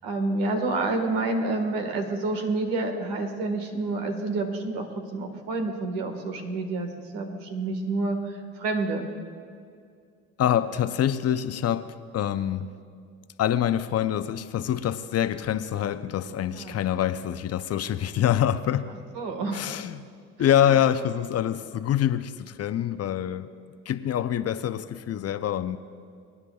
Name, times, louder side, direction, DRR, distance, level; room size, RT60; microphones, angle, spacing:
voice 1, 0.0-9.1 16.6-16.8 19.1-19.7, right 2 dB, 80° right, 1.6 m, -28 dB
voice 2, 10.4-12.8 13.4-19.0 19.5-20.1 20.4-23.5 23.9-25.8, left 10 dB, 45° left, 0.6 m, -25 dB
23.5 x 9.8 x 2.3 m
supercardioid pair, 75°, 34 cm